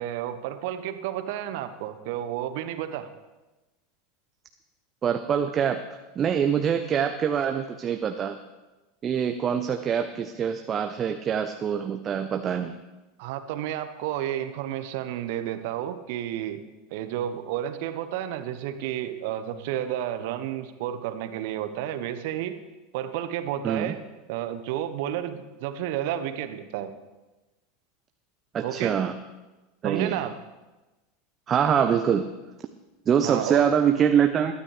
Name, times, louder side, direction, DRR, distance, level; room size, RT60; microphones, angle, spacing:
voice 1, 0.0-3.1 13.2-16.6 16.9-22.6 22.9-24.0 24.3-26.9 28.6-29.0 29.8-30.3 33.2-33.8, right 11 dB, 55° right, 10 dB, 1.2 m, -31 dB
voice 2, 5.0-5.8 6.2-8.3 9.0-12.7 23.6-23.9 28.5-29.1 29.8-30.2 31.5-32.3 33.1-34.5, right 8 dB, 30° right, 7 dB, 0.8 m, -24 dB
21.5 x 12.5 x 3.4 m, 1.1 s
figure-of-eight pair, 80°, 0 cm